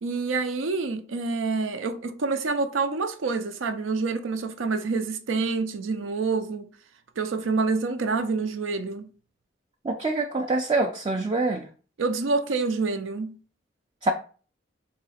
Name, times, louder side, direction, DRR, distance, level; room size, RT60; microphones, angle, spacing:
voice 1, 0.0-6.7 7.2-9.1 12.0-13.4, right 4 dB, 85° right, 0.5 m, -27 dB
voice 2, 9.8-11.7 14.0-14.1, right 2 dB, 25° right, 0.3 m, -25 dB
4.0 x 2.8 x 4.1 m
head